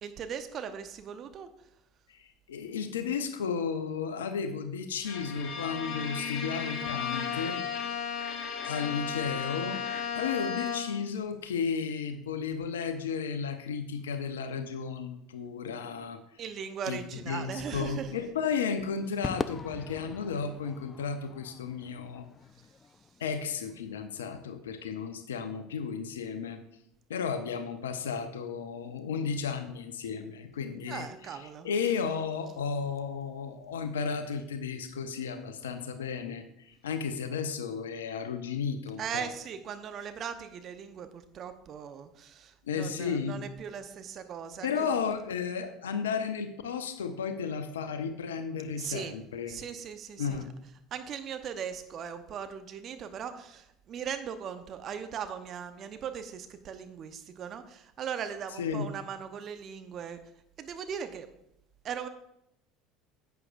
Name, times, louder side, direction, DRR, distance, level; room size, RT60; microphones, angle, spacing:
voice 1, 0.0-1.5 16.4-18.1 30.9-31.7 39.0-44.7 48.8-49.1 49.5-50.4 50.9-53.6 53.9-60.2 60.6-61.3 61.8-62.1, right 8 dB, 45° right, 8 dB, 0.9 m, -39 dB
voice 2, 2.5-7.6 8.6-9.8 10.1-16.2 16.8-17.0 17.3-22.3 23.2-26.6 27.1-39.3 42.7-43.4 44.6-49.6 50.2-50.5 58.5-58.9, left 6 dB, 75° left, 9 dB, 0.8 m, -33 dB
Bowed string instrument, 5.0-11.1, left 7 dB, 55° left, 1.2 m, -35 dB
Crowd / Fireworks, 19.2-23.7, left 5 dB, 30° left, 0.3 m, -41 dB
11.0 x 8.1 x 2.5 m, 0.79 s
figure-of-eight pair, 70°, 0 cm